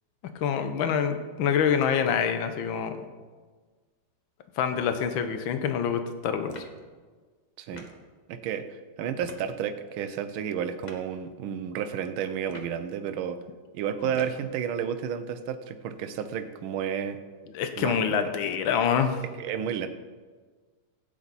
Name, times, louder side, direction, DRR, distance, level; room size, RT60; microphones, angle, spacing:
voice 1, 0.4-2.9 4.6-6.5 17.5-19.2, left 7 dB, 70° left, 8 dB, 1.6 m, -26 dB
sound 1, 6.5-6.8 7.7-8.0 9.2-9.5 10.8-11.1 12.4-12.8 14.1-14.5, left 1 dB, 30° left, 0.9 m, -43 dB
voice 2, 8.3-13.4 13.7-17.2 17.8-18.3 19.4-19.9, right 8 dB, 75° right, 9 dB, 1.6 m, -31 dB
15.5 x 9.0 x 4.1 m, 1.4 s
omnidirectional pair, 2.3 m